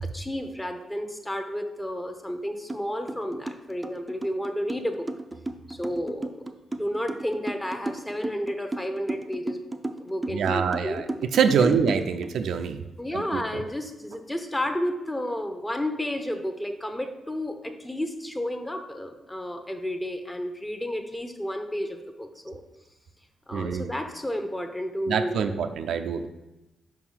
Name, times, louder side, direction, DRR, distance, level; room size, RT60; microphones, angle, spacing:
voice 1, 0.0-5.1 5.7-6.3 6.7-9.6 10.0-11.0 11.6-11.7 13.0-22.6 23.5-25.5, left 1 dB, 10° left, 6 dB, 0.8 m, -31 dB
sound 1, 2.7-2.8 3.1-12.3, right 2 dB, 15° right, 0.5 m, -34 dB
voice 2, 10.3-11.0 11.3-12.8 13.1-13.4 23.5-23.9 25.1-26.3, right 7 dB, 80° right, 7 dB, 0.5 m, -25 dB
5.3 x 4.8 x 5.7 m, 0.98 s
cardioid pair, 100°, 0 cm